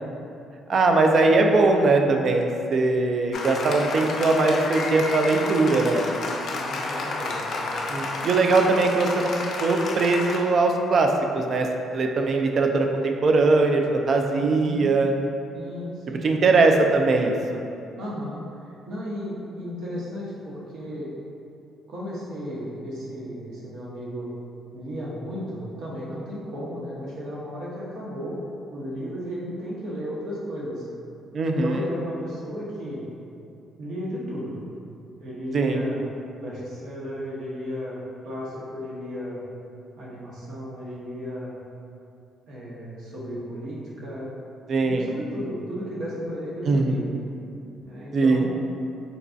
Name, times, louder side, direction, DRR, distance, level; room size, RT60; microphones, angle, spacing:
voice 1, 0.7-6.0 7.9-9.3 9.6-11.7 11.9-15.1 16.2-17.6 31.3-31.8 35.5-35.8 44.7-45.1 46.7-47.0 48.1-48.5, right 3 dB, 55° right, 3 dB, 0.3 m, -21 dB
Applause, 3.3-10.4, left 2 dB, 65° left, 0.4 m, -30 dB
voice 2, 6.5-7.5 14.4-15.0 15.5-16.3 18.0-18.4 18.9-21.1 21.9-24.3 24.7-28.4 28.7-30.9 31.5-33.0 33.8-34.5 35.2-36.0 36.4-39.4 40.0-41.6 42.5-44.3 44.8-47.1 47.8-48.5, equal, 75° right, -6 dB, 0.8 m, -34 dB
3.9 x 2.3 x 2.5 m, 2.6 s
cardioid pair, 75°, 0 cm